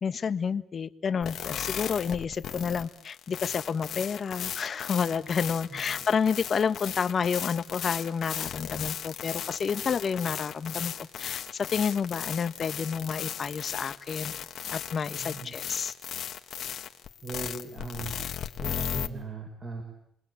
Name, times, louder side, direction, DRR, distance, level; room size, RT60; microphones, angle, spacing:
voice 1, 0.0-14.3 14.7-15.9, left 6 dB, 45° left, 12 dB, 1.3 m, -30 dB
sound 1, 1.2-19.1, left 9 dB, 65° left, 1.9 m, -36 dB
voice 2, 15.2-15.5 17.2-18.1 18.6-19.8, right 3 dB, 35° right, 3 dB, 7.0 m, -38 dB
29.5 x 21.5 x 8.6 m, 0.71 s
cardioid pair, 90°, 0 cm